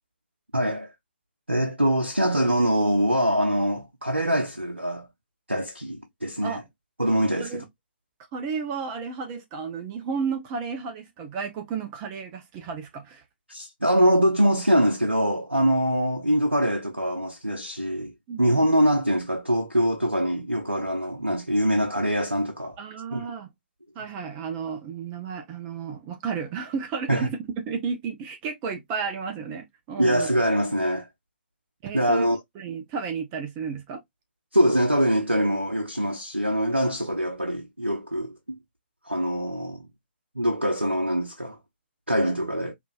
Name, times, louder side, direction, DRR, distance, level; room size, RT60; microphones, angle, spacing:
voice 1, 0.5-0.9 1.5-5.1 5.5-6.6 7.0-7.6 13.5-18.1 18.4-22.8 23.1-23.3 27.1-27.3 30.0-31.1 31.9-32.4 34.5-38.6 39.1-39.9 40.4-41.6 42.1-42.7, equal, 90° right, 0.7 m, -23 dB
voice 2, 8.3-13.2 18.3-18.7 22.8-23.5 23.9-30.3 31.8-32.2 32.5-34.0, right 5 dB, 25° right, 0.9 m, -32 dB
4.8 x 2.7 x 2.4 m
figure-of-eight pair, 125°, 6 cm